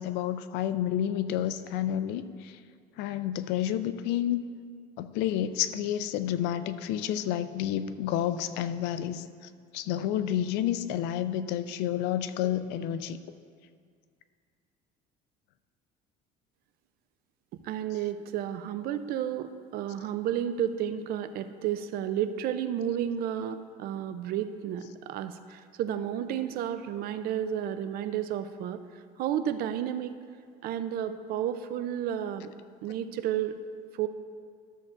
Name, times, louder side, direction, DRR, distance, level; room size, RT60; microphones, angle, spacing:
voice 1, 0.0-2.6 3.0-4.4 5.0-9.3 9.7-13.2, left 11 dB, 75° left, 12 dB, 0.4 m, -30 dB
voice 2, 17.5-28.8 29.2-30.2 30.6-32.5 32.8-33.6 33.9-34.1, right 10 dB, 60° right, 11 dB, 0.5 m, -32 dB
13.0 x 7.4 x 2.5 m, 2.1 s
cardioid pair, 125°, 18 cm